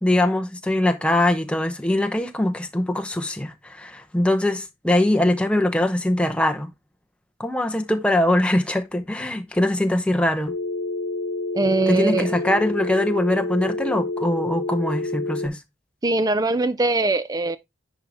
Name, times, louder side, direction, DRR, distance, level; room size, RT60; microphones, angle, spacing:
voice 1, 0.0-6.7 7.4-10.5 11.9-15.6, left 1 dB, 5° left, 0.8 m, -22 dB
Telephone, 10.5-15.5, left 2 dB, 60° left, 0.6 m, -28 dB
voice 2, 11.5-12.3 16.0-17.6, right 2 dB, 20° right, 0.4 m, -21 dB
10.0 x 4.8 x 3.4 m
head